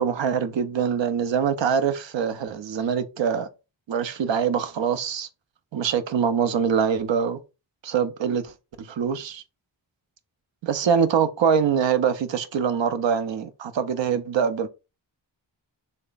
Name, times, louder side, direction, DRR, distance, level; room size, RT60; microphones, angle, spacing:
voice 1, 0.0-3.5 3.9-5.3 5.7-7.4 7.8-9.4 10.6-14.7, right 7 dB, 70° right, 0.6 m, -24 dB
3.3 x 2.1 x 3.8 m
cardioid pair, 40°, 46 cm